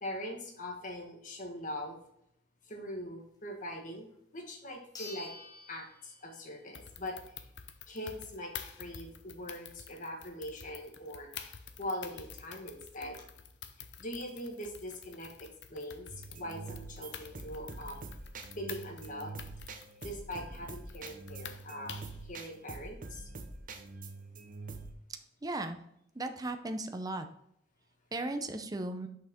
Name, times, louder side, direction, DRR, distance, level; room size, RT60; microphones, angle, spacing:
voice 1, 0.0-2.0 2.7-4.1 4.3-5.3 5.7-7.1 7.9-13.2 14.0-18.0 18.6-19.3 20.0-22.0 22.3-23.3, left 1 dB, 45° left, 2 dB, 1.5 m, -42 dB
sound 1, 4.1-4.2 4.9-6.7 7.1-7.2 11.8-11.9 12.1-12.2 12.8-13.2, left 3 dB, 20° left, 1.2 m, -49 dB
sound 2, 6.7-22.2, left 7 dB, 75° left, 0.7 m, -49 dB
sound 3, 16.1-24.9, right 3 dB, 50° right, 0.8 m, -45 dB
voice 2, 25.4-25.8 26.2-27.3 28.1-29.1, right 2 dB, 20° right, 7 dB, 0.6 m, -36 dB
6.5 x 5.6 x 3.6 m, 0.73 s
head